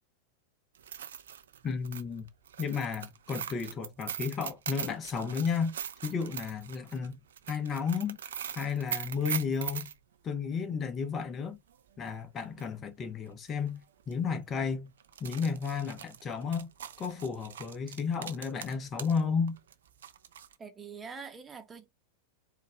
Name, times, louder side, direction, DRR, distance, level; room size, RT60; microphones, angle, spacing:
sound 1, 0.7-9.9 12.1-12.2 12.6-12.7 13.5-13.7 14.0-14.1 15.0-19.2 19.5-20.5, right 9 dB, 65° right, 0.5 m, -41 dB
voice 1, 1.6-2.3 2.6-5.7 6.0-7.2 7.5-8.2 8.6-9.9 10.2-11.6 12.0-13.8 14.1-14.9 15.2-16.7 17.0-19.6, left 5 dB, 25° left, 1.1 m, -33 dB
voice 2, 20.6-21.9, right 5 dB, 15° right, 1.0 m, -44 dB
4.5 x 2.5 x 4.4 m
figure-of-eight pair, 90°, 0 cm